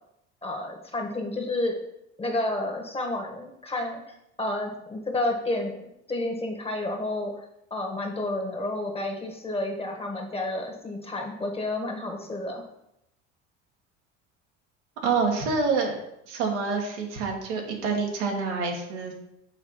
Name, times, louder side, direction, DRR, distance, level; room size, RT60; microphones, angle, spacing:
voice 1, 0.4-1.8 2.2-4.0 4.4-7.4 7.7-12.6, left 2 dB, 15° left, 2 dB, 1.4 m, -30 dB
voice 2, 15.0-16.0 16.3-19.1, right 4 dB, 80° right, 0 dB, 1.3 m, -27 dB
6.4 x 3.5 x 5.1 m, 0.81 s
hypercardioid pair, 70°, 35 cm